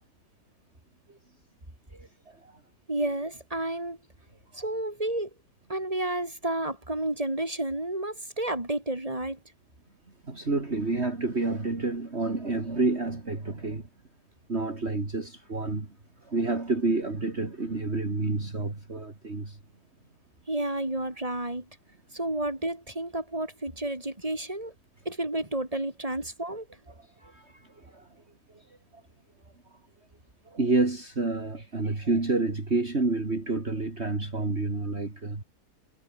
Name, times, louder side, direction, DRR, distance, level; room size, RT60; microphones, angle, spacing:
voice 1, 1.9-2.5 10.3-13.9 14.5-15.9 16.2-19.6 27.0-28.1 30.5-35.4, right 3 dB, 40° right, 3.6 m, -29 dB
voice 2, 2.9-4.0 4.6-5.3 5.7-9.4 20.5-21.7 22.1-24.7 25.1-26.7, right 1 dB, 20° right, 5.3 m, -31 dB
omnidirectional pair, 1.7 m